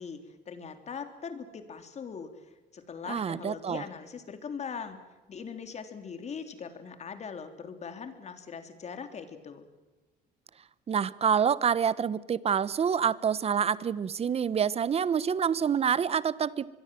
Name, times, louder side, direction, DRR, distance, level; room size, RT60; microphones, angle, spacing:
voice 1, 0.0-2.3 2.7-5.0 5.3-9.6, left 6 dB, 40° left, 8 dB, 3.3 m, -41 dB
voice 2, 3.1-3.8 10.9-16.7, right 7 dB, 35° right, 18 dB, 1.0 m, -27 dB
25.0 x 22.0 x 7.6 m, 1.2 s
cardioid pair, 110°, 17 cm